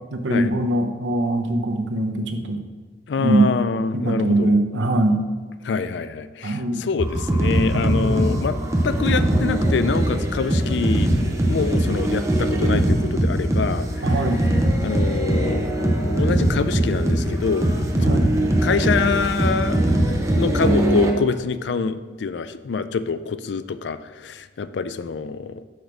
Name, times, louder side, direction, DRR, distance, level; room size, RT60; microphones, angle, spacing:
voice 1, 0.1-2.6 3.2-3.5 3.9-5.2 6.4-6.9 7.7-8.3 14.0-14.4 17.9-18.3, right 2 dB, 90° right, 5 dB, 0.8 m, -22 dB
voice 2, 3.1-4.6 5.6-8.6 8.8-13.9 14.8-15.7 16.2-17.7 18.0-18.2 18.6-25.6, left 5 dB, 70° left, 13 dB, 0.4 m, -25 dB
sound 1, 7.0-21.1, right 1 dB, 15° right, 0.8 m, -21 dB
6.4 x 5.1 x 6.0 m, 1.4 s
head